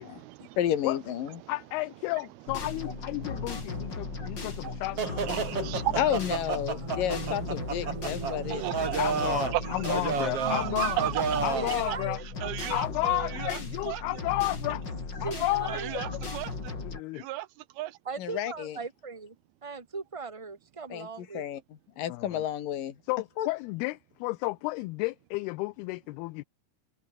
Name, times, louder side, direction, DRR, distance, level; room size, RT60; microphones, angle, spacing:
voice 1, 0.0-0.6 1.4-1.6 3.2-4.9 5.2-6.1 6.8-7.0 8.2-9.0 9.5-9.9 10.1-11.4 12.4-14.2 15.7-16.7 17.1-18.0, right 16 dB, 75° right, 2.7 m, -36 dB
voice 2, 0.6-1.4 6.0-8.6 18.2-18.8 20.9-21.6 22.0-22.9 23.4-23.5, left 10 dB, 60° left, 3.3 m, -31 dB
voice 3, 1.5-5.9 9.0-11.0 11.4-12.2 12.7-14.9 15.2-16.1 16.8-17.3 22.1-22.4 23.1-26.4, left 22 dB, 80° left, 2.4 m, -32 dB
sound 1, 2.5-17.0, left 4 dB, 25° left, 4.2 m, -37 dB
sound 2, 5.0-11.8, right 6 dB, 40° right, 3.5 m, -32 dB
voice 4, 11.5-12.2 15.2-16.0 18.0-19.3 19.6-21.5, right 4 dB, 15° right, 1.0 m, -38 dB
omnidirectional pair, 4.7 m